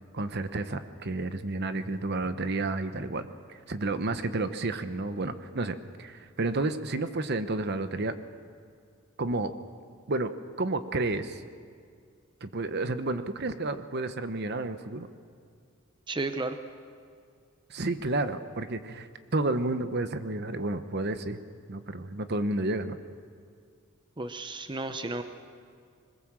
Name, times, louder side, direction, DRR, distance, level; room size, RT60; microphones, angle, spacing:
voice 1, 0.1-8.1 9.2-9.5 10.1-10.3 10.6-11.4 12.4-15.1 17.7-21.4 21.7-23.0, right 2 dB, 50° right, 10 dB, 1.0 m, -31 dB
voice 2, 16.1-16.6 24.2-25.2, right 2 dB, 20° right, 8 dB, 0.7 m, -33 dB
22.0 x 20.5 x 7.5 m, 2.2 s
head